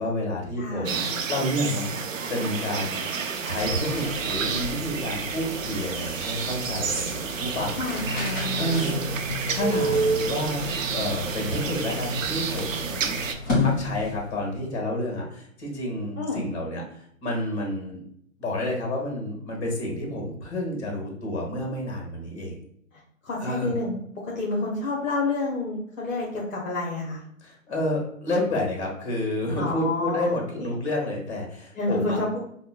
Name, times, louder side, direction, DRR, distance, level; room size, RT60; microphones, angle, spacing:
voice 1, 0.0-1.0 1.3-3.0 3.5-7.8 8.6-10.6 10.9-13.2 13.6-18.0 18.4-22.6 23.4-23.7 27.4-32.2, left 1 dB, 50° left, 0 dB, 1.3 m, -30 dB
voice 2, 0.6-1.1 7.8-9.1 16.2-16.4 23.2-23.9 24.2-27.2 29.6-30.7 31.7-32.4, left 3 dB, 70° left, -3 dB, 0.9 m, -29 dB
sound 1, 0.8-13.3, right 5 dB, 70° right, 0.6 m, -30 dB
sound 2, 3.2-14.4, left 3 dB, 15° left, 0.7 m, -34 dB
sound 3, 8.0-14.8, left 2 dB, 25° right, 0.5 m, -37 dB
5.2 x 2.2 x 2.2 m, 0.69 s
figure-of-eight pair, 140°, 41 cm